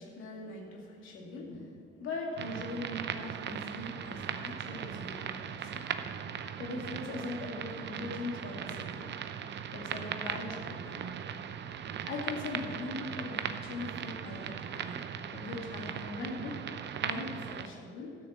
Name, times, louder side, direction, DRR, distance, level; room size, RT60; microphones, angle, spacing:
voice 1, 0.0-5.9 6.6-9.1 9.7-11.2 12.1-15.0 15.3-16.6 17.0-18.2, left 2 dB, 85° left, 0 dB, 2.4 m, -40 dB
sound 1, 2.4-17.7, right 8 dB, 60° right, 0.7 m, -39 dB
12.5 x 6.6 x 7.4 m, 2.3 s
cardioid pair, 90°, 20 cm